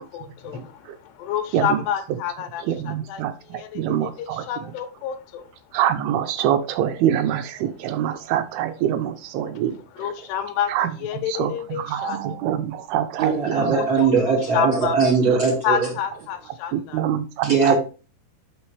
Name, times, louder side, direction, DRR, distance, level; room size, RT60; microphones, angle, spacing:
voice 1, 0.0-5.5 9.7-10.7 11.0-12.4 13.7-15.0 15.6-17.0, left 8 dB, 90° left, 8 dB, 3.1 m, -29 dB
voice 2, 2.7-4.5 5.7-9.8 10.7-10.9 11.3-11.5 11.8-13.8 16.7-17.8, right 10 dB, 80° right, 9 dB, 2.5 m, -25 dB
voice 3, 13.2-15.9 17.4-17.8, right 5 dB, 35° right, -2 dB, 2.7 m, -20 dB
6.3 x 6.1 x 3.2 m, 0.34 s
omnidirectional pair, 4.7 m